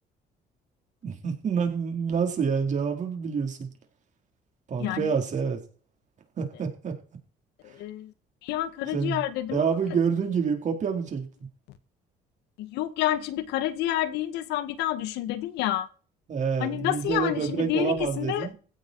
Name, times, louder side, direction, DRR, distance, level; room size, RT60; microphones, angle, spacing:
voice 1, 1.0-3.7 4.7-5.6 6.4-6.9 8.9-9.2 9.5-11.3 16.3-18.5, right 6 dB, 45° right, 4.6 m, -27 dB
voice 2, 4.8-5.1 6.5-6.6 7.6-8.1 8.4-9.7 12.6-15.9 16.6-18.5, left 13 dB, 90° left, 1.7 m, -29 dB
16.0 x 8.4 x 4.8 m
cardioid pair, 110°, 17 cm